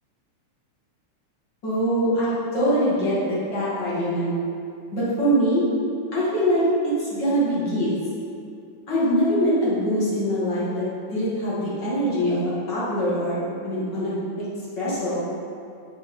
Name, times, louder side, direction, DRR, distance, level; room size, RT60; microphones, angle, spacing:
voice 1, 1.6-4.3 4.9-5.6 6.1-6.6 7.0-7.9 8.9-10.9 11.1-12.4 12.7-13.4 13.6-14.5 14.8-15.2, equal, 40° left, -10 dB, 2.3 m, -23 dB
9.3 x 4.6 x 3.7 m, 2.4 s
omnidirectional pair, 3.5 m